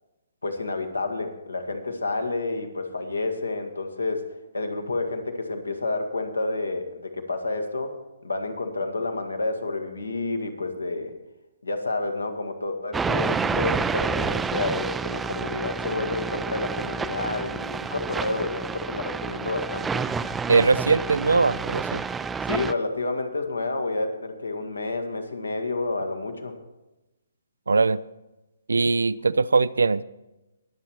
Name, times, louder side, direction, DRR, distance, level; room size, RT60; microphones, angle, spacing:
voice 1, 0.4-4.2 4.5-7.9 8.2-11.1 11.6-20.0 22.4-26.5, left 2 dB, 85° left, 6 dB, 1.7 m, -29 dB
sound 1, 12.9-22.7, right 5 dB, 10° right, 0.4 m, -29 dB
voice 2, 20.5-22.0 27.7-28.0 28.7-30.0, right 4 dB, 75° right, 18 dB, 0.4 m, -21 dB
21.0 x 7.4 x 4.5 m, 1.0 s
figure-of-eight pair, 135°, 0 cm